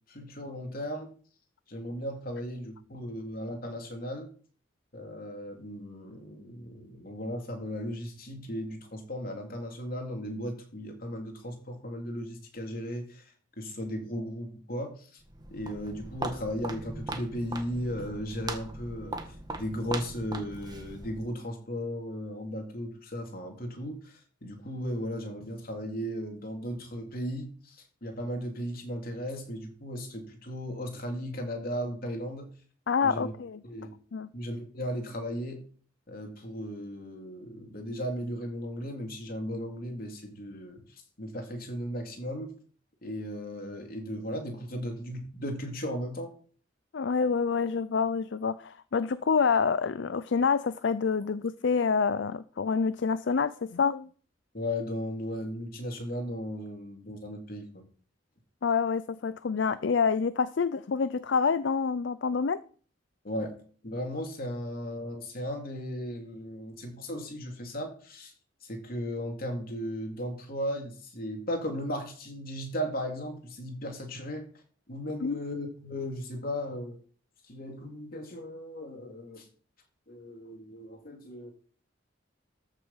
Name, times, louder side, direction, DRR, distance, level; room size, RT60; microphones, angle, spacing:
voice 1, 0.1-1.1 1.7-4.3 4.9-13.2 13.6-15.2 15.5-32.5 33.0-33.3 33.6-33.9 34.3-35.6 36.1-40.8 41.2-42.5 43.0-46.3 54.5-57.8 63.2-63.5 63.8-68.3 68.6-74.5 74.9-77.0 77.5-79.5 80.1-81.5, equal, 50° left, 3.1 m, -36 dB
Walk footsteps, 15.2-21.4, right 2 dB, 20° right, 1.6 m, -39 dB
voice 2, 32.9-33.6 34.1-34.3 46.9-54.1 58.6-62.6 75.2-75.4, left 5 dB, 65° left, 0.5 m, -27 dB
14.0 x 6.6 x 5.7 m
head